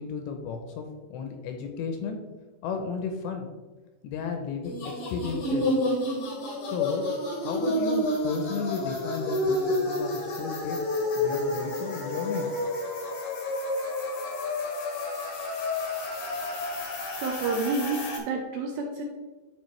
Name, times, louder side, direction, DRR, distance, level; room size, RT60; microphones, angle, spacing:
voice 1, 0.0-2.2 2.6-3.5 4.0-4.8 5.1-5.8 6.6-7.1 7.4-10.8 11.2-12.5, left 5 dB, 80° left, 4 dB, 2.7 m, -33 dB
sound 1, 4.6-18.2, left 1 dB, 65° left, 1.8 m, -30 dB
voice 2, 17.2-19.0, right 3 dB, 80° right, 1 dB, 2.5 m, -29 dB
11.0 x 4.9 x 3.2 m, 1.2 s
omnidirectional pair, 5.5 m